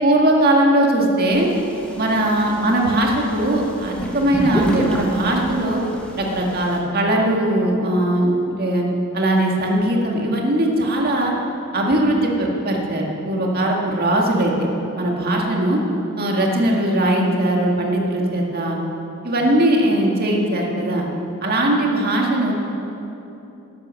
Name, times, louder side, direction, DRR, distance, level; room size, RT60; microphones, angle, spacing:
voice 1, 0.0-1.5 2.0-5.8 6.2-8.8 9.1-11.3 11.7-14.5 15.0-15.8 16.2-18.8 19.2-21.1 21.4-22.5, right 1 dB, 45° right, -1 dB, 1.9 m, -19 dB
sound 1, 1.3-6.8, right 1 dB, 5° left, 1.4 m, -29 dB
11.5 x 9.7 x 7.1 m, 3.0 s
head